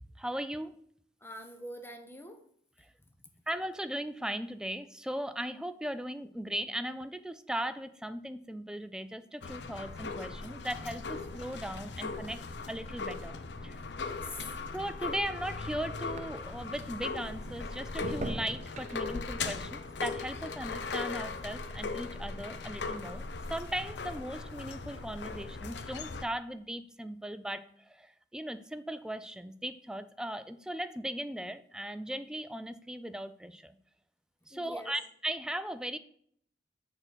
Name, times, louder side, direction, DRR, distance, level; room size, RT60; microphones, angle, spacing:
voice 1, 0.2-0.8 3.5-13.4 13.6-13.8 14.7-23.2 23.5-33.8 34.5-36.0, right 1 dB, 5° right, 11 dB, 0.4 m, -38 dB
voice 2, 1.2-2.4 3.0-3.1 14.0-14.5 34.5-34.9, left 1 dB, 15° left, 5 dB, 0.9 m, -45 dB
sound 1, 9.4-26.2, left 4 dB, 70° left, 0.6 m, -39 dB
sound 2, 13.7-16.8 17.2-21.7 22.0-22.5, right 2 dB, 45° right, 0.6 m, -48 dB
6.5 x 3.8 x 6.3 m, 0.63 s
head